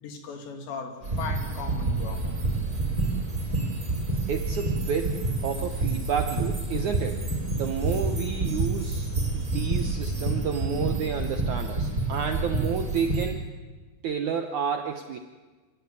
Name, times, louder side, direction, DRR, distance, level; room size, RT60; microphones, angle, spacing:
voice 1, 0.0-2.3, left 5 dB, 90° left, 4 dB, 5.0 m, -37 dB
sound 1, 1.0-13.3, right 2 dB, 20° right, 4.8 m, -28 dB
voice 2, 4.3-7.2 7.6-13.4 14.0-15.2, right 7 dB, 75° right, 6 dB, 1.8 m, -30 dB
26.5 x 16.0 x 9.5 m, 1.3 s
omnidirectional pair, 4.9 m